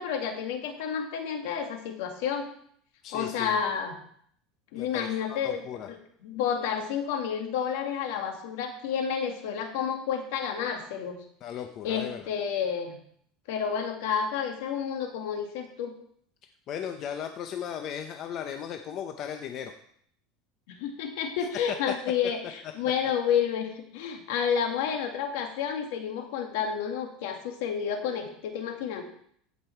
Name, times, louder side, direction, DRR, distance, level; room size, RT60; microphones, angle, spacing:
voice 1, 0.0-2.5 3.1-4.0 4.7-5.6 5.9-11.2 11.8-13.0 13.5-15.9 20.7-29.0, left 7 dB, 75° left, 4 dB, 1.9 m, -30 dB
voice 2, 3.0-3.6 4.8-5.9 11.4-12.2 16.7-19.8 21.7-21.9, left 8 dB, 45° left, 6 dB, 0.8 m, -36 dB
15.0 x 5.4 x 4.5 m, 0.65 s
supercardioid pair, 125°, 0 cm